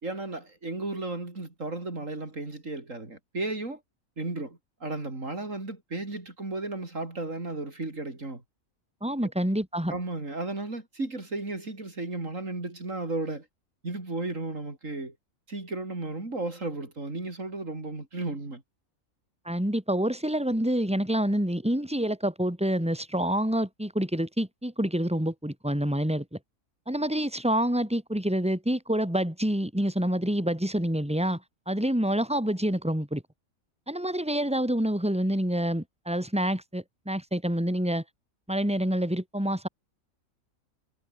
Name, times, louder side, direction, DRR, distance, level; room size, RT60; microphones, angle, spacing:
voice 1, 0.0-3.8 4.2-8.4 9.2-9.3 9.9-13.5 13.8-15.1 15.5-18.6, right 2 dB, 65° right, 4.8 m, -34 dB
voice 2, 9.0-9.9 19.4-26.2 26.9-31.4 31.7-33.2 33.9-38.0 38.5-39.7, right 1 dB, 5° right, 4.7 m, -27 dB
omnidirectional pair, 1.5 m